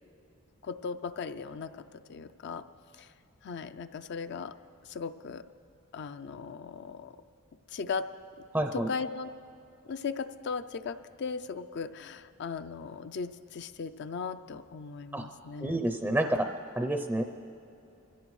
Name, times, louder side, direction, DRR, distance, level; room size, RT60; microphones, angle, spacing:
voice 1, 0.6-2.7 2.9-3.1 3.4-4.6 4.8-5.4 5.9-7.2 7.7-8.1 8.7-9.3 9.9-15.8, left 5 dB, 55° left, 10 dB, 0.4 m, -37 dB
voice 2, 8.5-8.9 15.1-15.2 15.6-16.4 16.8-17.2, right 1 dB, 10° right, 5 dB, 0.5 m, -28 dB
23.5 x 16.0 x 3.2 m, 2.8 s
head